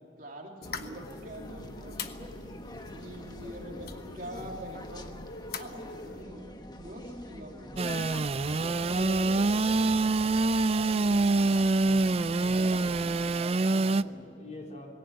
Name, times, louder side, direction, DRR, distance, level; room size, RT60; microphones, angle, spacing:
voice 1, 0.2-2.4 2.9-5.2 5.5-7.9 8.5-10.2 10.7-11.2 12.3-12.8 13.2-14.2, right 1 dB, 50° right, 0 dB, 3.2 m, -44 dB
sound 1, 0.6-6.2, left 4 dB, 55° left, 1.1 m, -43 dB
sound 2, 0.6-13.4, left 1 dB, 25° left, 1.1 m, -45 dB
Engine / Sawing, 7.8-14.0, right 3 dB, 35° right, 0.4 m, -25 dB
voice 2, 8.4-9.0 11.8-14.9, left 1 dB, 40° left, -1 dB, 4.2 m, -47 dB
20.5 x 17.5 x 8.8 m, 2.7 s
head